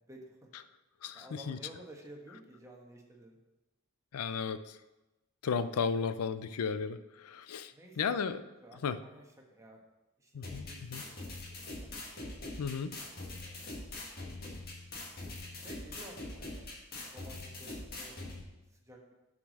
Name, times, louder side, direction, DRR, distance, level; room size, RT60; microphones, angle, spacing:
voice 1, 0.1-0.5 1.1-3.4 7.7-8.2 8.6-9.8 10.2-11.9 13.3-13.7 15.6-16.7 17.1-18.1 18.8-19.1, right 1 dB, 15° right, 0 dB, 1.2 m, -53 dB
voice 2, 1.0-1.6 4.1-4.8 5.4-7.7 8.0-8.4 8.8-9.0 10.3-11.0 12.6-12.9, left 6 dB, 85° left, 13 dB, 0.4 m, -34 dB
sound 1, 10.4-18.4, left 2 dB, 45° left, 1.7 m, -43 dB
6.9 x 5.1 x 6.4 m, 1.0 s
head